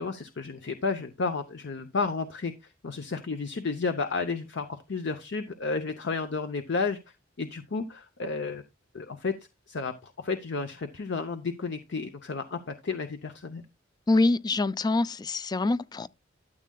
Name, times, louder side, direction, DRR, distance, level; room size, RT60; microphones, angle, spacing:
voice 1, 0.0-7.0 7.4-8.6 8.9-9.4 9.7-13.6, left 4 dB, 65° left, 0.7 m, -32 dB
voice 2, 14.1-16.1, left 2 dB, 20° left, 0.4 m, -25 dB
12.5 x 7.4 x 2.3 m
head